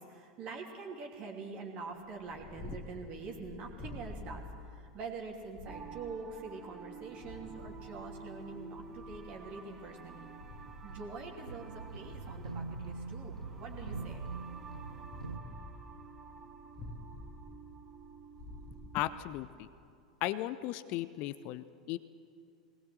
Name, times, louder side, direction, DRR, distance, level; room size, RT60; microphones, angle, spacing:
voice 1, 0.0-10.3 10.8-14.2, right 4 dB, 35° right, 1 dB, 2.9 m, -45 dB
Purr, 2.1-19.8, left 1 dB, 25° left, 2.1 m, -50 dB
sound 1, 5.6-19.2, right 5 dB, 20° right, 2.9 m, -51 dB
sound 2, 7.5-9.4 9.8-15.4, right 4 dB, 80° right, 1.0 m, -45 dB
voice 2, 18.9-19.7 20.2-22.0, left 15 dB, 40° left, 14 dB, 0.7 m, -36 dB
20.5 x 20.0 x 7.8 m, 2.5 s
figure-of-eight pair, 85°, 3 cm